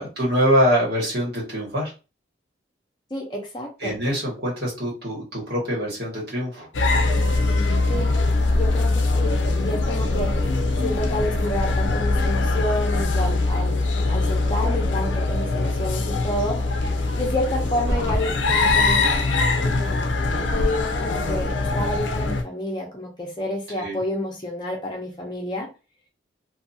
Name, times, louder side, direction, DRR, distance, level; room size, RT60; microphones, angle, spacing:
voice 1, 0.0-1.9 3.8-6.7 23.8-24.0, equal, 60° right, -4 dB, 1.6 m, -24 dB
voice 2, 3.1-4.0 7.9-8.2 8.5-9.4 9.6-10.3 10.8-16.6 17.2-19.1 19.6-19.7 20.3-25.7, left 1 dB, 25° left, -1 dB, 0.8 m, -29 dB
sound 1, 6.7-22.4, left 3 dB, 85° left, 0.5 m, -22 dB
sound 2, 17.9-18.3, equal, 10° right, 1.1 m, -24 dB
2.7 x 2.6 x 2.7 m, 0.30 s
head